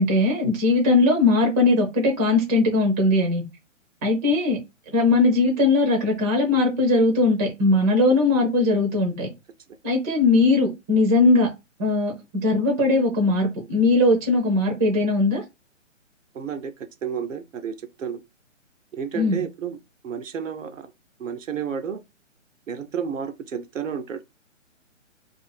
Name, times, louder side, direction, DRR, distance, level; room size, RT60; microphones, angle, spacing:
voice 1, 0.0-3.4 4.0-4.6 4.9-9.3 9.8-11.5 11.8-12.1 12.4-15.4 19.1-19.4, left 2 dB, 15° right, 0.5 m, -19 dB
voice 2, 16.3-16.7 17.0-18.2 18.9-19.8 20.0-20.9 21.2-22.0 22.7-24.3, right 7 dB, 75° right, 0.7 m, -31 dB
2.6 x 2.5 x 4.2 m
figure-of-eight pair, 130°, 38 cm